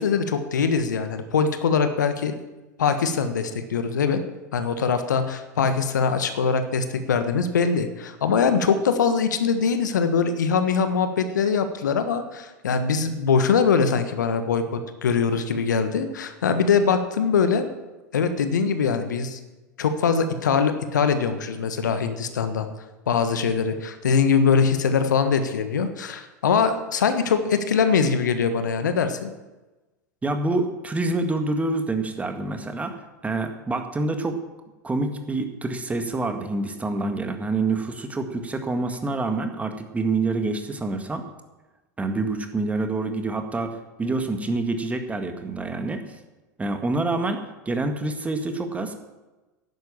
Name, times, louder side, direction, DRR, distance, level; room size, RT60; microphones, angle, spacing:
voice 1, 0.0-2.3 2.8-4.2 4.5-17.7 18.1-19.4 19.8-22.7 23.1-29.3, left 6 dB, 75° left, 9 dB, 1.3 m, -22 dB
voice 2, 30.2-33.0 33.2-34.4 34.8-41.2 42.0-46.0 46.6-47.4 47.6-48.9, right 3 dB, 15° right, 6 dB, 1.7 m, -27 dB
11.0 x 9.5 x 7.1 m, 1.1 s
figure-of-eight pair, 85°, 10 cm